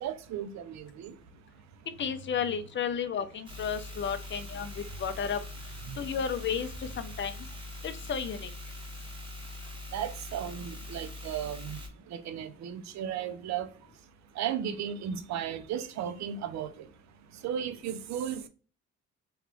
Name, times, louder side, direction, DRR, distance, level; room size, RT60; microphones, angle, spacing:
voice 1, 0.0-1.1 5.9-6.0 9.9-11.8 12.1-13.7 14.4-16.9 17.4-18.5, right 9 dB, 65° right, 0.5 m, -35 dB
voice 2, 2.0-5.4 6.0-7.3 7.8-8.5, left 7 dB, 40° left, 0.5 m, -33 dB
sound 1, 3.5-11.9, left 2 dB, 15° right, 1.1 m, -43 dB
3.1 x 2.4 x 3.0 m
cardioid pair, 90°, 30 cm